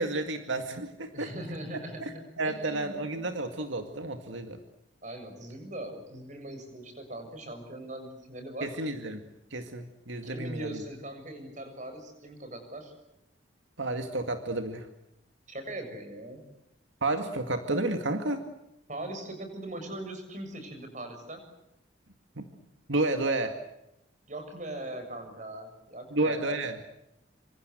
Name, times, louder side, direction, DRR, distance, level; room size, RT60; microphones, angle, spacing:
voice 1, 0.0-1.3 2.0-4.6 8.6-9.2 9.5-10.8 13.8-14.9 17.0-18.4 22.4-22.5 22.9-23.6 26.1-26.8, right 2 dB, 80° right, 6 dB, 2.1 m, -31 dB
voice 2, 1.1-3.0 4.0-4.1 5.0-8.9 10.3-12.9 15.5-16.4 18.9-21.4 24.3-26.6, right 1 dB, 40° right, 6 dB, 7.1 m, -40 dB
27.0 x 26.0 x 8.0 m, 0.85 s
head